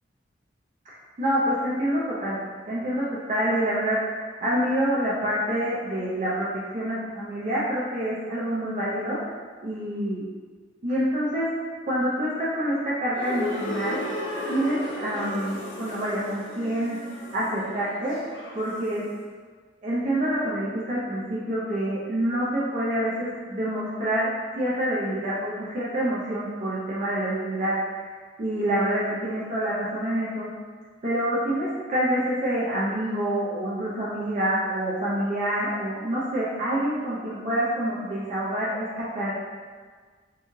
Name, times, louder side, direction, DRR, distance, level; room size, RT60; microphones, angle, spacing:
voice 1, 0.9-2.4 2.7-6.5 6.7-9.4 9.6-10.2 10.8-11.5 11.8-14.0 14.5-17.0 17.3-18.2 18.5-19.1 19.8-28.0 28.4-30.5 31.0-39.3, right 1 dB, 45° right, -8 dB, 0.5 m, -27 dB
sound 1, 13.1-19.0, left 1 dB, 90° left, 0.5 m, -35 dB
2.7 x 2.3 x 3.0 m, 1.5 s
head